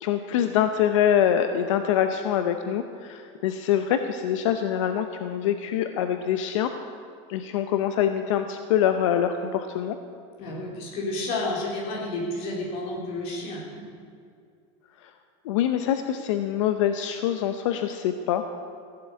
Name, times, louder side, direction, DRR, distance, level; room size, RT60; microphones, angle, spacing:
voice 1, 0.0-6.7 7.3-10.0 15.5-18.4, left 10 dB, 80° left, 8 dB, 0.8 m, -24 dB
voice 2, 10.4-13.8, left 2 dB, 40° left, -2 dB, 3.5 m, -31 dB
15.5 x 7.9 x 8.5 m, 2.3 s
supercardioid pair, 180°, 16 cm